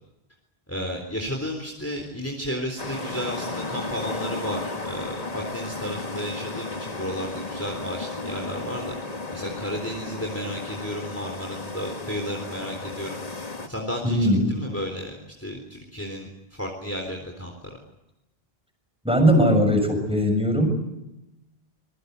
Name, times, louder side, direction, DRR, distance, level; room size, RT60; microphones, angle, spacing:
voice 1, 0.7-8.9 9.3-13.2 13.7-16.3 16.6-17.5, equal, 15° left, 2 dB, 3.8 m, -33 dB
sound 1, 2.8-13.7, left 3 dB, 40° left, 1.9 m, -34 dB
voice 2, 14.0-14.6 19.0-20.9, equal, 5° right, 4 dB, 6.8 m, -20 dB
25.5 x 22.5 x 8.2 m, 0.92 s
omnidirectional pair, 1.0 m